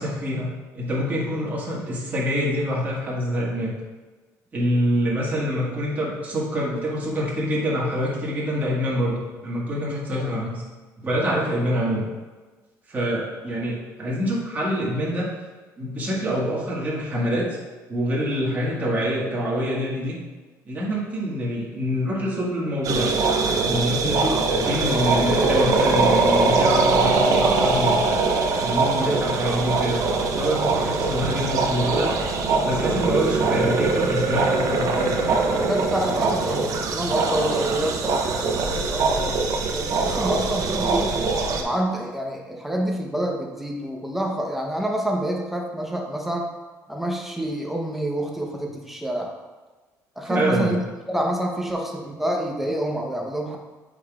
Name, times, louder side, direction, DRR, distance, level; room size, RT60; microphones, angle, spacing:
voice 1, 0.0-3.7 4.5-10.6 11.0-12.0 12.9-15.3 15.8-17.6 17.9-20.2 20.6-23.1 23.6-28.0 28.6-30.0 30.3-32.1 32.6-35.4 50.2-50.8, equal, 25° right, -5 dB, 1.6 m, -26 dB
sound 1, 22.8-41.6, right 3 dB, 60° right, 0.7 m, -22 dB
voice 2, 28.9-29.2 35.7-39.3 39.7-41.2 41.6-46.5 46.9-49.3 50.2-50.8 51.1-53.6, right 1 dB, 5° right, 0 dB, 0.9 m, -27 dB
7.9 x 5.0 x 2.4 m, 1.3 s
cardioid pair, 130°, 7 cm